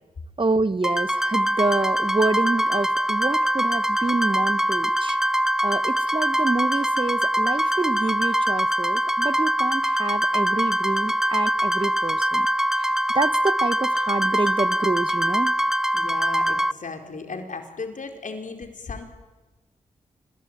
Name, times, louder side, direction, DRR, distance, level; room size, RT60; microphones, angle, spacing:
voice 1, 0.4-5.2 5.6-12.5 12.8-15.6, right 3 dB, 35° right, 15 dB, 1.1 m, -27 dB
sound 1, 0.8-16.7, equal, 5° right, 0.8 m, -23 dB
voice 2, 15.9-19.0, left 4 dB, 70° left, 4 dB, 4.6 m, -35 dB
28.0 x 21.5 x 9.1 m, 1.2 s
cardioid pair, 40°, 14 cm